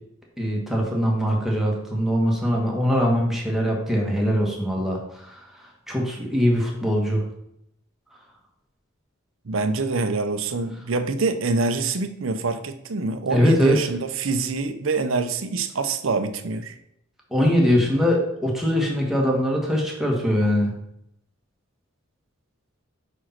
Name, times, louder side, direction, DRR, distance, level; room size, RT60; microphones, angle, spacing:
voice 1, 0.4-7.2 13.3-13.8 17.3-20.7, equal, ahead, -2 dB, 1.5 m, -22 dB
voice 2, 9.4-16.8, right 3 dB, 70° right, 9 dB, 0.7 m, -25 dB
5.4 x 4.9 x 5.8 m, 0.77 s
head